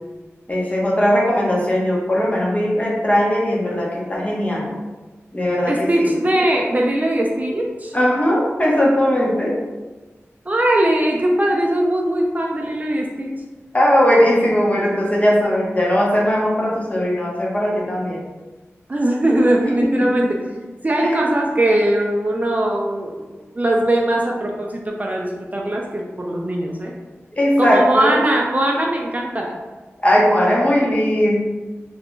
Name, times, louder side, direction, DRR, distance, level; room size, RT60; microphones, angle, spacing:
voice 1, 0.5-4.7 5.3-6.1 7.9-9.6 13.7-18.2 19.8-20.3 21.0-21.2 27.3-28.2 30.0-31.4, equal, 30° left, -4 dB, 0.7 m, -18 dB
voice 2, 5.7-7.9 10.5-13.3 18.9-20.4 20.8-26.9 27.6-29.6, right 1 dB, 35° right, 0 dB, 0.3 m, -20 dB
2.4 x 2.2 x 3.6 m, 1.2 s
wide cardioid pair, 80°, 5 cm